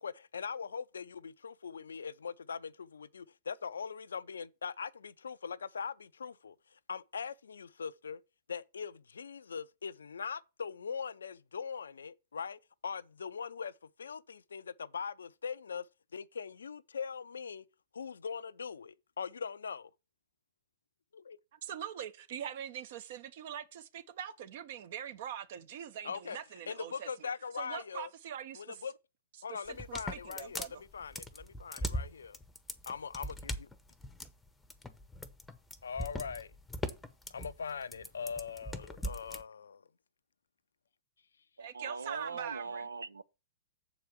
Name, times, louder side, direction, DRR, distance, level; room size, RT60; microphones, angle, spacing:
voice 1, 0.0-8.2 8.5-13.7 14.0-15.9 16.1-17.6 17.9-19.9 21.1-21.4 26.0-26.4 26.7-28.1 28.6-28.9 29.4-32.4 32.9-33.7 35.8-36.5 37.3-39.8, left 6 dB, 70° left, 0.5 m, -41 dB
voice 2, 21.6-27.3 27.6-28.8 29.5-30.8 41.6-42.9, right 9 dB, 50° right, 1.0 m, -43 dB
sound 1, 29.7-39.4, left 1 dB, 5° left, 0.8 m, -40 dB
voice 3, 41.6-43.2, right 4 dB, 80° right, 0.5 m, -41 dB
7.3 x 4.8 x 7.1 m
figure-of-eight pair, 110°, 0 cm